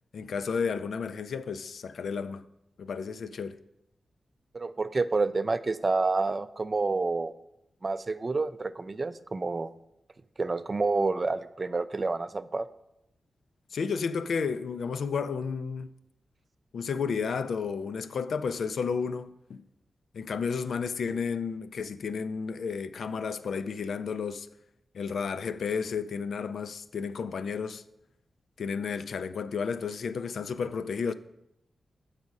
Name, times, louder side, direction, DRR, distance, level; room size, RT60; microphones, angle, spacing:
voice 1, 0.1-2.4 2.8-3.6 13.7-15.9 16.7-19.6 20.1-24.5 24.9-27.8 28.6-31.1, left 5 dB, 80° left, 0.3 m, -32 dB
voice 2, 4.5-7.3 7.8-9.7 10.4-12.7, right 3 dB, 40° right, 0.4 m, -28 dB
7.3 x 4.8 x 5.2 m
cardioid pair, 60°, 0 cm